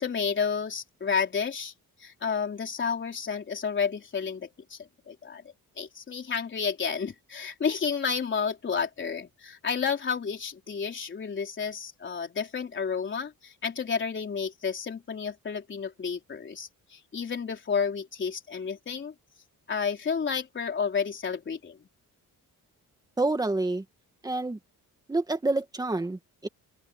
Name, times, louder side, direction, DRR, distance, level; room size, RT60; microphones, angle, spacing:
voice 1, 0.0-1.7 2.0-4.8 5.1-5.4 5.8-19.1 19.7-21.8, left 6 dB, 35° left, 3.9 m, -31 dB
voice 2, 23.2-23.8 24.2-24.6 25.1-26.5, right 2 dB, 10° right, 1.8 m, -28 dB
open air
wide cardioid pair, 180°, 35 cm